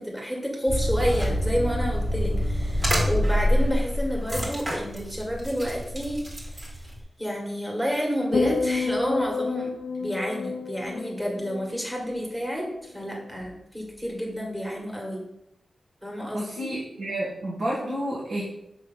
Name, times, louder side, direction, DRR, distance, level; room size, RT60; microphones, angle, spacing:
voice 1, 0.0-6.2 7.2-9.7 10.0-15.2 16.0-16.7, equal, 10° right, -1 dB, 1.8 m, -29 dB
sound 1, 0.7-7.0, equal, 35° right, 1.8 m, -26 dB
sound 2, 8.3-12.7 13.0-13.4, left 4 dB, 80° left, 0.5 m, -30 dB
voice 2, 16.3-18.4, right 1 dB, 80° right, -7 dB, 1.7 m, -30 dB
6.1 x 3.2 x 5.6 m, 0.82 s
wide cardioid pair, 110°, 0 cm